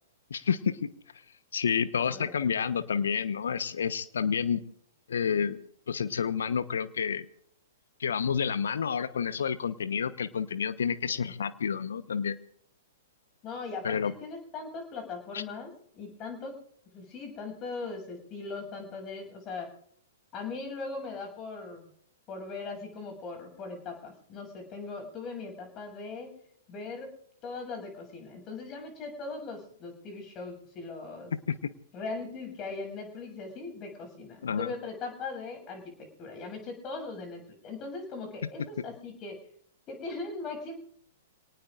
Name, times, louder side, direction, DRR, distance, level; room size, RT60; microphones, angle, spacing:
voice 1, 0.3-0.9 1.5-4.6 5.1-5.6 5.9-7.2 8.0-12.4 13.8-14.1 15.3-15.4 31.3-31.7 34.4-34.7, left 7 dB, 70° left, 13 dB, 1.0 m, -29 dB
voice 2, 13.4-16.5 16.9-19.7 20.3-21.9 22.3-26.3 26.7-27.1 27.4-31.3 31.9-35.9 36.2-39.4 39.9-40.8, left 3 dB, 30° left, 4 dB, 7.0 m, -39 dB
29.0 x 18.5 x 2.6 m, 0.66 s
figure-of-eight pair, 110°, 0 cm